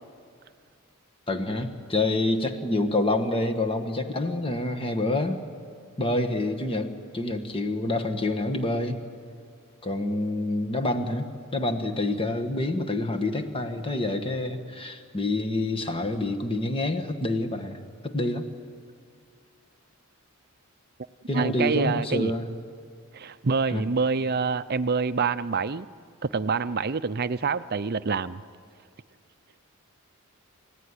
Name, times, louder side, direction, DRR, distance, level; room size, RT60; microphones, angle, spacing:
voice 1, 1.3-5.4 6.0-9.0 9.8-18.4 21.3-22.5 23.7-23.8, left 2 dB, 25° left, 7 dB, 1.5 m, -27 dB
voice 2, 21.3-22.3 23.1-25.9 26.2-28.4, right 4 dB, 45° right, 13 dB, 0.6 m, -26 dB
29.5 x 16.0 x 9.8 m, 2.3 s
head